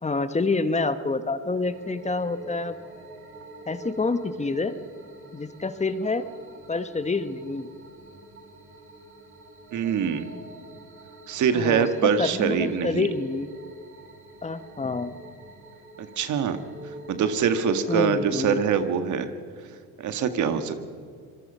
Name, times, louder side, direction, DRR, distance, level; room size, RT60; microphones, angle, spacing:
voice 1, 0.0-2.8 3.7-4.7 5.3-6.3 6.7-7.7 11.5-13.5 14.4-15.1 17.9-18.6, left 3 dB, 20° left, 11 dB, 1.3 m, -27 dB
sound 1, 1.7-18.8, right 1 dB, 40° right, 5.2 m, -44 dB
voice 2, 9.7-10.3 11.3-13.1 16.0-16.6 17.1-19.3 20.0-20.8, right 7 dB, 65° right, 9 dB, 1.8 m, -24 dB
26.0 x 21.0 x 5.6 m, 2.2 s
supercardioid pair, 80°, 32 cm